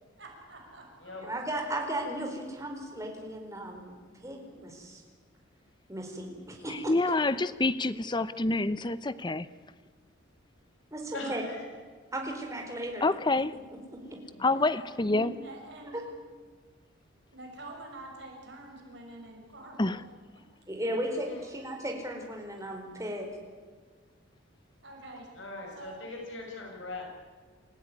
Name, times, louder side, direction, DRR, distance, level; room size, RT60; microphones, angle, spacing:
voice 1, 0.2-1.1 14.5-14.9 15.4-16.0 17.3-20.0 24.8-25.3 25.7-26.0, right 2 dB, 60° right, 1 dB, 6.1 m, -47 dB
voice 2, 1.2-4.0 4.2-5.0 5.9-6.7 10.9-11.4 12.1-13.1 14.1-14.2 15.9-16.0 20.7-23.3, right 1 dB, 15° right, 2 dB, 4.6 m, -35 dB
voice 3, 6.7-9.5 13.0-13.5 14.4-15.3 19.8-20.0, left 2 dB, 20° left, 15 dB, 0.7 m, -27 dB
voice 4, 11.1-11.7 14.3-14.5 21.3-21.4 25.4-27.1, left 2 dB, 70° left, 0 dB, 5.8 m, -40 dB
28.5 x 15.5 x 9.7 m, 1.5 s
head